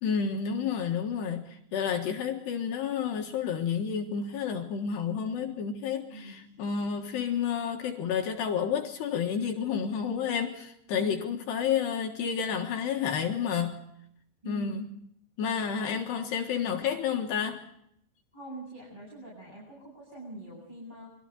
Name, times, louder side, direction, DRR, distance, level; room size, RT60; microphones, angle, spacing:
voice 1, 0.0-13.8 14.5-14.9 15.4-17.7, left 7 dB, 65° left, 2 dB, 3.3 m, -30 dB
voice 2, 6.1-6.5 10.9-11.3 14.4-14.7 18.3-21.1, equal, 10° right, -5 dB, 7.6 m, -43 dB
29.5 x 23.0 x 4.1 m, 0.71 s
omnidirectional pair, 5.7 m